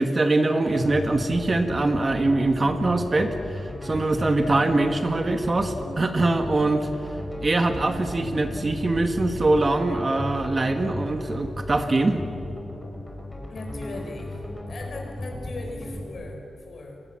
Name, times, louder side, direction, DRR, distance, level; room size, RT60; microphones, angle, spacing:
voice 1, 0.0-6.9 7.4-12.2, right 2 dB, 25° right, 6 dB, 1.4 m, -23 dB
sound 1, 0.6-16.1, left 1 dB, 10° left, 4.8 m, -36 dB
sound 2, 6.3-9.7, right 4 dB, 75° right, 6.5 m, -42 dB
voice 2, 13.5-17.0, left 2 dB, 45° left, 2 dB, 5.3 m, -39 dB
30.0 x 24.0 x 7.5 m, 2.9 s
wide cardioid pair, 175°, 0 cm